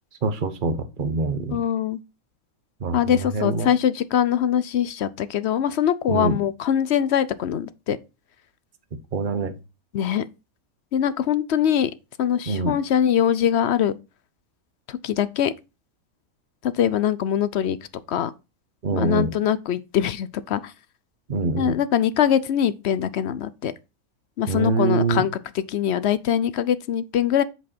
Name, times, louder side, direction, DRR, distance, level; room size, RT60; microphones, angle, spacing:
voice 1, 0.2-1.6 2.8-3.7 6.1-6.4 9.1-9.5 12.4-12.8 18.8-19.3 21.3-21.7 24.5-25.2, right 3 dB, 40° right, 1.1 m, -24 dB
voice 2, 1.5-2.0 2.9-8.0 9.9-10.2 10.9-11.9 12.2-13.9 14.9-15.5 16.6-17.8 18.1-18.3 18.9-20.7 21.6-23.7 24.4-27.4, left 9 dB, 60° left, 0.8 m, -23 dB
8.2 x 4.8 x 4.3 m
omnidirectional pair, 1.5 m